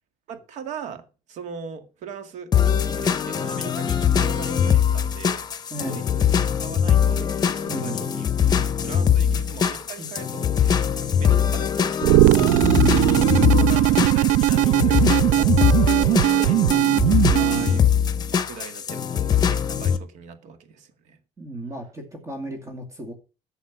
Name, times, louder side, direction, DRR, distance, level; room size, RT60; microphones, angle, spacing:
voice 1, 0.3-2.5 2.8-5.5 5.8-7.4 7.8-8.5 8.8-12.3 13.5-16.6 17.1-17.9 18.3-21.2, right 6 dB, 65° right, 2.1 m, -40 dB
sound 1, 2.5-20.0, left 8 dB, 30° left, 1.1 m, -22 dB
voice 2, 5.7-6.0 7.7-8.0 9.2-9.4 10.0-10.1 12.6-13.1 17.2-17.9 21.4-23.1, right 1 dB, 25° right, 2.4 m, -34 dB
sound 2, 12.0-17.8, right 15 dB, 85° right, 0.5 m, -19 dB
12.0 x 7.1 x 6.0 m
cardioid pair, 145°, 13 cm